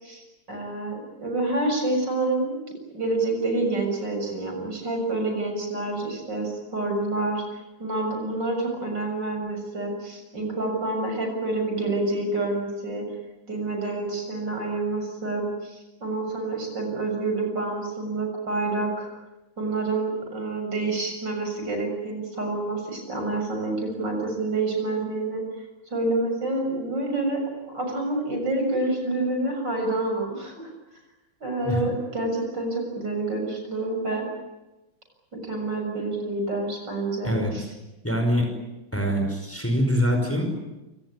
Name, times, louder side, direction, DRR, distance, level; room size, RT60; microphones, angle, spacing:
voice 1, 0.0-13.1 13.5-19.1 19.6-25.4 25.9-27.4 27.7-30.7 31.4-34.3 35.3-37.6, right 2 dB, 60° right, 3 dB, 7.5 m, -28 dB
voice 2, 38.0-38.5 38.9-40.5, equal, 5° left, 3 dB, 5.3 m, -24 dB
28.0 x 18.5 x 9.9 m, 1.0 s
omnidirectional pair, 2.2 m